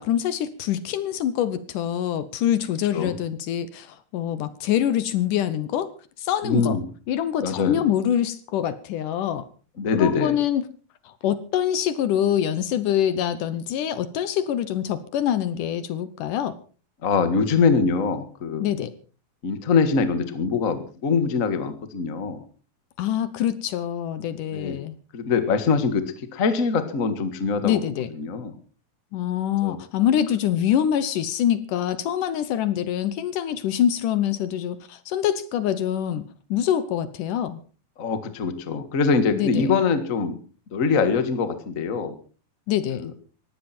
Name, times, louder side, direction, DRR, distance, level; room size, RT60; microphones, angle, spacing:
voice 1, 0.0-5.9 6.2-6.8 7.1-9.5 9.9-10.6 11.1-16.6 18.6-18.9 23.0-25.0 27.6-28.1 29.1-37.6 39.3-39.7 42.7-43.1, left 10 dB, 70° left, 14 dB, 2.3 m, -25 dB
voice 2, 6.4-6.9 7.4-7.8 9.8-10.4 17.0-18.7 19.4-22.4 24.5-24.8 25.1-27.8 28.1-28.5 29.6-29.8 38.0-40.4 40.7-42.2 42.9-43.1, left 5 dB, 35° left, 10 dB, 1.2 m, -23 dB
19.5 x 15.5 x 4.3 m, 0.38 s
omnidirectional pair, 4.2 m